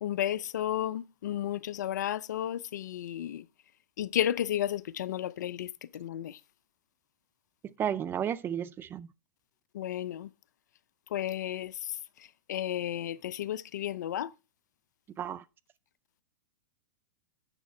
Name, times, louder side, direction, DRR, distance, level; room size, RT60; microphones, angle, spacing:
voice 1, 0.0-3.4 4.0-6.4 9.7-10.3 11.1-11.8 12.5-14.3, left 11 dB, 70° left, 0.5 m, -33 dB
voice 2, 7.8-9.1 15.2-15.4, right 9 dB, 20° right, 0.5 m, -32 dB
9.9 x 6.6 x 3.2 m
hypercardioid pair, 110°, 10 cm